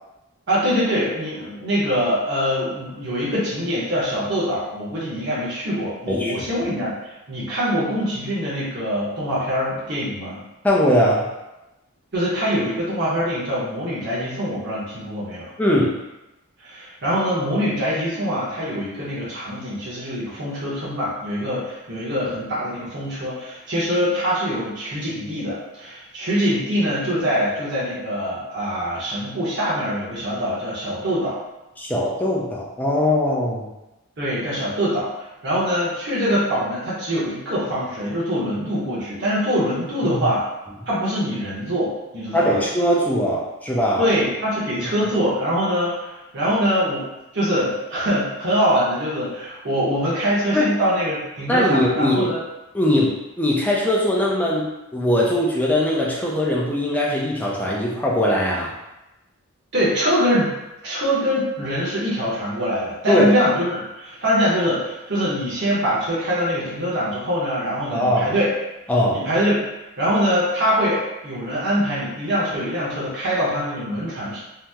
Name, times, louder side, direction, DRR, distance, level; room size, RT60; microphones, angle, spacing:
voice 1, 0.5-10.4 12.1-15.5 16.6-31.4 34.2-40.5 40.9-42.6 44.0-47.1 47.3-52.4 52.9-53.0 59.7-60.6 60.8-68.5 69.1-69.6 70.0-74.4, equal, 50° right, -8 dB, 0.9 m, -23 dB
voice 2, 10.6-11.3 15.6-15.9 31.8-33.7 40.0-40.3 42.3-44.1 50.5-50.7 51.5-52.3 52.7-58.7 63.1-63.3 67.9-68.3 68.9-69.2, left 1 dB, 5° left, -4 dB, 0.4 m, -20 dB
2.8 x 2.0 x 3.4 m, 0.98 s
head